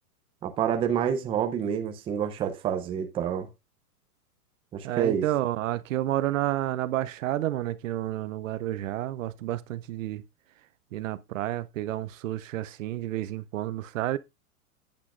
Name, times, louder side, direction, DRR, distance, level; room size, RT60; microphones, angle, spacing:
voice 1, 0.4-3.5 4.7-5.3, right 8 dB, 10° right, 0.6 m, -28 dB
voice 2, 4.8-10.2 10.9-14.2, right 14 dB, 60° right, 0.6 m, -30 dB
11.5 x 8.8 x 2.4 m
hypercardioid pair, 140°, 44 cm